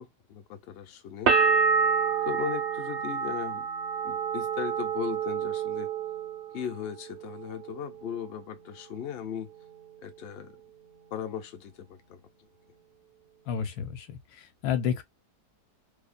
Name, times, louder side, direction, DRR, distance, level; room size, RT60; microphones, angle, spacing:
voice 1, 0.0-1.3 2.2-3.7 4.0-5.9 6.5-9.5 10.0-10.5 11.1-12.2, left 9 dB, 60° left, 0.6 m, -37 dB
sound 1, 1.3-6.9 7.2-7.9, right 6 dB, 65° right, 0.5 m, -28 dB
voice 2, 13.5-14.1 14.3-15.0, left 8 dB, 75° left, 1.1 m, -30 dB
2.7 x 2.1 x 2.4 m
omnidirectional pair, 1.7 m